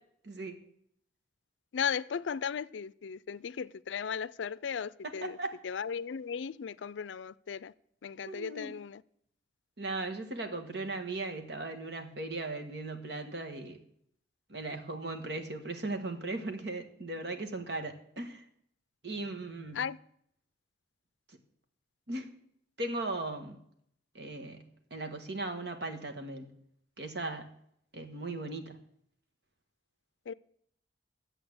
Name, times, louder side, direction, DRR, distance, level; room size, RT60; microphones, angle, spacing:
voice 1, 0.2-0.6 5.0-5.5 8.2-8.7 9.8-13.8 14.5-18.4 19.0-19.8 22.1-22.4 22.8-23.6 24.1-24.6 24.9-26.5 27.0-27.5 27.9-28.8, right 2 dB, 60° right, 1.5 m, -38 dB
voice 2, 1.7-5.4 5.6-7.7 8.0-9.0 19.7-20.0 30.3-30.4, left 7 dB, 85° left, 0.4 m, -36 dB
11.0 x 7.8 x 7.8 m
head